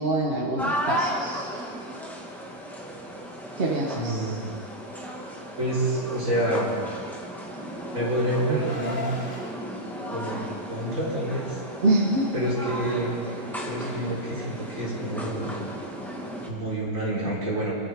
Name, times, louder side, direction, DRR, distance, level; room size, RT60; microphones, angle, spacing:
voice 1, 0.0-1.5 3.6-4.3 11.8-12.3, right 2 dB, 40° right, -2 dB, 1.4 m, -25 dB
sound 1, 0.6-16.5, equal, ahead, 1.6 m, -35 dB
voice 2, 3.9-4.5 5.6-6.7 7.9-9.1 10.1-11.6 12.3-13.3 13.6-15.7 16.5-17.7, right 1 dB, 55° right, -6 dB, 4.8 m, -28 dB
Car, 7.3-9.5, left 3 dB, 60° left, 2.4 m, -38 dB
25.5 x 14.0 x 3.6 m, 2.3 s
omnidirectional pair, 1.6 m